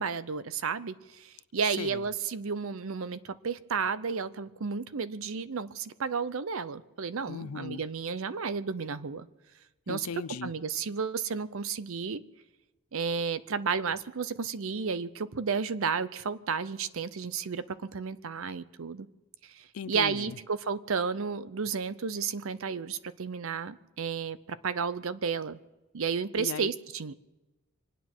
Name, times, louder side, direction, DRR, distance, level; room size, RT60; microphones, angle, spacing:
voice 1, 0.0-9.3 9.9-10.1 10.4-12.2 12.9-19.1 19.4-25.6 25.9-27.1, right 5 dB, 65° right, 15 dB, 0.6 m, -32 dB
voice 2, 7.3-7.8 9.9-10.5 19.7-20.2 26.4-26.7, left 6 dB, 80° left, 18 dB, 0.5 m, -37 dB
25.5 x 9.3 x 6.1 m, 1.1 s
head